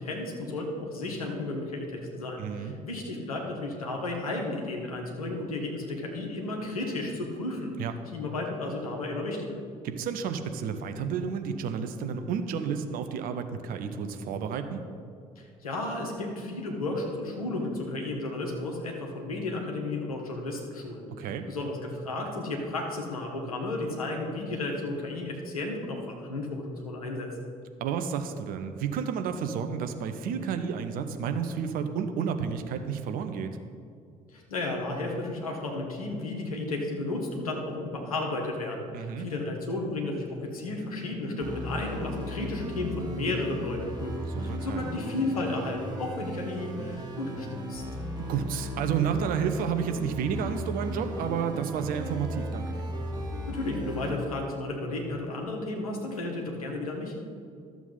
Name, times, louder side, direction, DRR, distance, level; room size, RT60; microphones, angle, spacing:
voice 1, 0.0-7.7 8.1-9.6 15.4-21.1 21.5-27.3 34.3-47.8 53.5-57.1, left 2 dB, 80° left, 0 dB, 1.3 m, -33 dB
voice 2, 2.4-2.7 7.8-7.9 9.8-14.8 21.2-21.5 27.8-33.6 38.9-39.3 44.3-44.9 48.2-52.9, right 7 dB, 50° right, 7 dB, 0.8 m, -31 dB
sound 1, 41.4-54.1, equal, 25° right, 1.9 m, -36 dB
13.0 x 7.1 x 4.0 m, 2.2 s
figure-of-eight pair, 50°, 18 cm